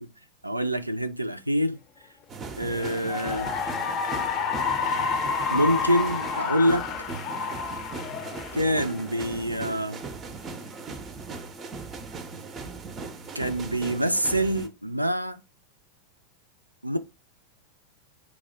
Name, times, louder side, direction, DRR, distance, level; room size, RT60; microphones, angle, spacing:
voice 1, 0.4-1.8 2.6-3.5 5.5-6.9 8.5-10.0 13.3-15.4 16.8-17.0, equal, 85° right, 0.4 m, -26 dB
sound 1, 2.3-14.7, right 4 dB, 25° right, 0.5 m, -38 dB
Cheering / Applause, 2.7-9.4, left 5 dB, 35° left, 0.5 m, -30 dB
4.7 x 2.1 x 4.2 m
figure-of-eight pair, 90°, 0 cm